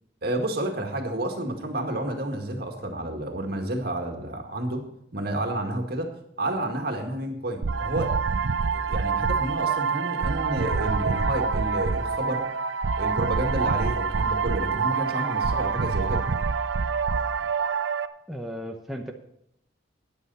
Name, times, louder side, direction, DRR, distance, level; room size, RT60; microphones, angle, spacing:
voice 1, 0.2-4.8 5.1-6.1 6.4-8.4 8.7-12.5 13.0-16.2, right 1 dB, 55° right, 3 dB, 2.0 m, -30 dB
sound 1, 7.6-18.1, right 5 dB, 70° right, 0.6 m, -26 dB
voice 2, 18.3-19.1, equal, ahead, 1 dB, 0.9 m, -35 dB
13.5 x 10.5 x 4.2 m, 0.75 s
head